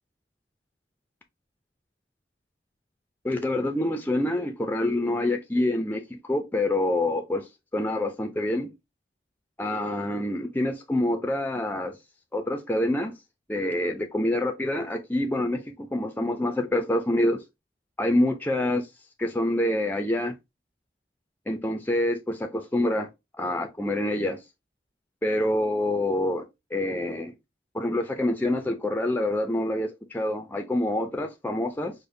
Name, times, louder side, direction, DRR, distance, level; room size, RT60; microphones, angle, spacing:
voice 1, 3.2-8.7 9.6-12.0 12.3-13.1 13.5-17.4 18.0-18.9 19.2-20.3 21.5-23.1 23.4-24.4 25.2-26.4 26.7-27.3 27.7-31.9, left 1 dB, 10° left, 0.4 m, -26 dB
5.0 x 2.1 x 2.6 m
head